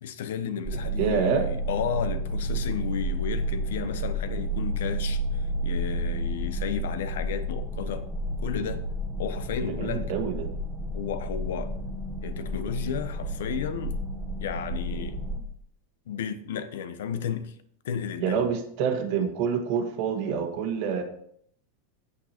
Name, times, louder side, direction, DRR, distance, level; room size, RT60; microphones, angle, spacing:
voice 1, 0.0-5.2 5.6-8.1 8.4-8.8 9.2-10.1 10.9-11.7 12.2-14.0 14.4-15.2 16.1-17.5 17.8-18.5, left 8 dB, 75° left, 1.1 m, -33 dB
sound 1, 0.7-15.4, right 1 dB, 10° right, 1.2 m, -31 dB
voice 2, 1.0-1.5 9.6-10.5 18.2-21.0, right 7 dB, 40° right, 1.5 m, -27 dB
9.0 x 8.5 x 4.4 m
supercardioid pair, 175°, 0 cm